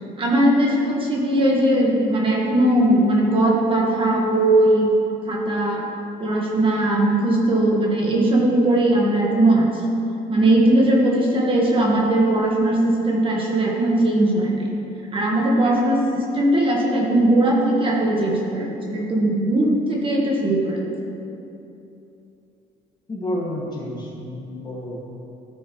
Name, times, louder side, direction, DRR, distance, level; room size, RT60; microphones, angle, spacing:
voice 1, 0.2-4.9 5.3-5.8 6.2-9.8 10.3-14.6 15.1-20.9, right 1 dB, 30° right, -3 dB, 1.5 m, -19 dB
voice 2, 23.1-25.0, left 1 dB, 25° left, -4 dB, 1.9 m, -30 dB
13.5 x 6.3 x 3.1 m, 2.9 s
cardioid pair, 110°, 17 cm